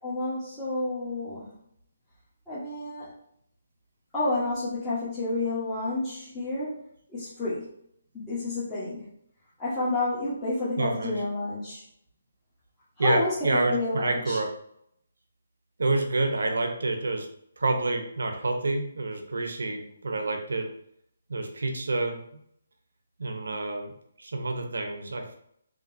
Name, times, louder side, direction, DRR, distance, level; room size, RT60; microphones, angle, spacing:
voice 1, 0.0-1.5 2.5-3.1 4.1-6.8 7.1-7.7 8.1-9.0 9.6-11.8 13.0-13.3 13.7-14.4, left 2 dB, 10° left, -14 dB, 1.2 m, -30 dB
voice 2, 10.8-11.2 13.0-14.5 15.8-17.3 17.6-20.7 21.3-22.2 23.2-23.9 24.2-25.3, right 2 dB, 80° right, 4 dB, 0.9 m, -28 dB
5.1 x 2.9 x 2.7 m, 0.70 s
hypercardioid pair, 160°, 0 cm